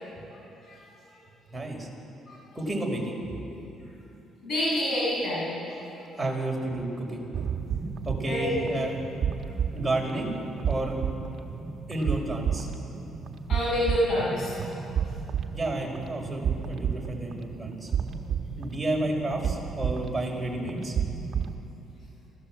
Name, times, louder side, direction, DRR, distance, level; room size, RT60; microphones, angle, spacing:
voice 1, 1.5-1.9 2.5-3.2 6.2-7.2 8.1-9.0 9.7-10.4 10.7-11.0 11.9-12.7 15.5-17.9 18.6-21.0, right 2 dB, 10° right, -1 dB, 5.2 m, -31 dB
voice 2, 4.4-5.6 8.2-8.6 13.5-14.6, left 1 dB, 55° left, -5 dB, 7.6 m, -27 dB
sound 1, 7.3-21.6, right 7 dB, 55° right, 1.4 m, -32 dB
27.5 x 16.0 x 7.6 m, 2.9 s
cardioid pair, 110°, 0 cm